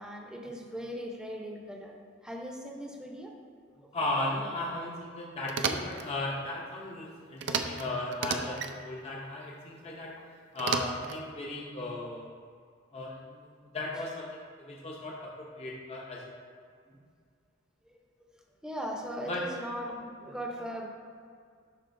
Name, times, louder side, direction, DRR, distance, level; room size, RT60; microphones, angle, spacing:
voice 1, 0.0-2.0 2.2-3.3 3.8-3.9 10.2-10.3 16.9-17.0 17.8-18.0 18.6-20.9, equal, 5° right, -1 dB, 0.8 m, -39 dB
voice 2, 3.9-10.1 10.5-12.3 12.9-16.2 19.3-19.4, left 2 dB, 30° left, -3 dB, 0.7 m, -36 dB
sound 1, 5.5-6.1 7.4-7.8 8.1-8.7 10.6-11.2, right 5 dB, 60° right, 0.4 m, -32 dB
11.5 x 4.2 x 2.6 m, 2.2 s
head